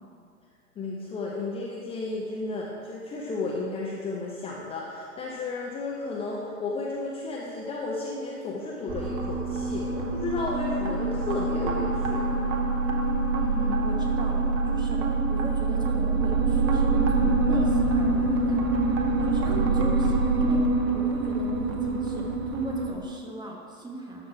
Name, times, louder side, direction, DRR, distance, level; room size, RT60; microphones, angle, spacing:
voice 1, 0.8-12.3, left 3 dB, 15° left, -3 dB, 0.8 m, -33 dB
sound 1, 8.9-22.9, right 3 dB, 30° right, 1.1 m, -25 dB
voice 2, 13.4-18.6 19.2-24.3, right 2 dB, 10° right, 0 dB, 1.1 m, -38 dB
12.5 x 6.1 x 4.9 m, 2.4 s
figure-of-eight pair, 105°, 45 cm